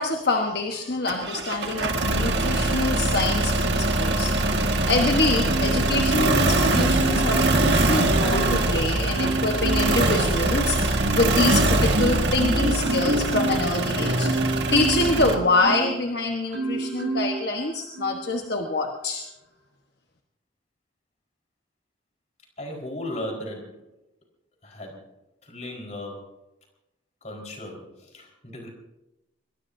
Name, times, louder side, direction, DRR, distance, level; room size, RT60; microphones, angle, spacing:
voice 1, 0.0-4.3 4.6-14.3 14.7-19.2, left 2 dB, 55° left, 3 dB, 1.2 m, -25 dB
sound 1, 1.1-15.4, right 2 dB, 60° right, 1.8 m, -23 dB
Marimba xylophone, 5.4-6.4 6.8-8.7 9.1-10.0 10.6-16.0 16.5-17.4 17.9-18.2, right 2 dB, 75° right, 5.4 m, -28 dB
voice 2, 22.6-23.8 24.6-25.0 25.4-26.3 27.2-28.7, left 1 dB, 35° left, 1 dB, 4.5 m, -36 dB
22.5 x 22.0 x 2.7 m, 0.94 s
head